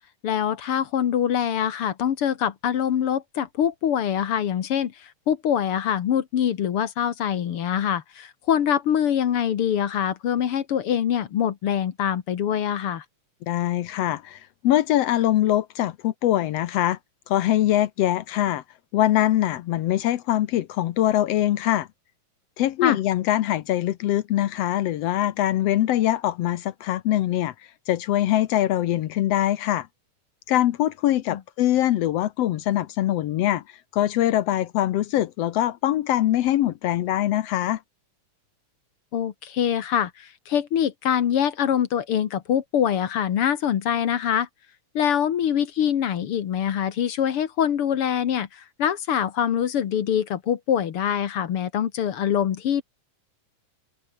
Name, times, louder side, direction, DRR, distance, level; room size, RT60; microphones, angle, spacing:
voice 1, 0.2-13.0 22.8-23.0 31.3-31.4 39.1-44.5 45.0-52.8, left 9 dB, 55° left, 1.8 m, -24 dB
voice 2, 13.4-17.0 17.3-18.6 18.9-21.9 22.6-27.5 27.9-29.9 30.5-33.6 33.9-37.8, left 13 dB, 70° left, 1.5 m, -23 dB
omnidirectional pair, 3.7 m